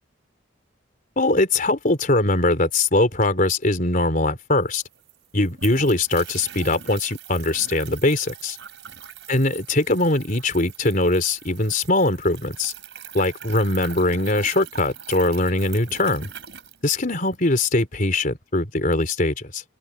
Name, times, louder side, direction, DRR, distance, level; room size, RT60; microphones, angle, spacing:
voice 1, 1.2-4.8 5.3-8.6 9.3-12.7 13.1-16.3 16.8-19.6, left 2 dB, 45° left, 4.0 m, -21 dB
sound 1, 4.4-4.5 4.6-17.4, right 8 dB, 60° right, 5.9 m, -41 dB
open air
head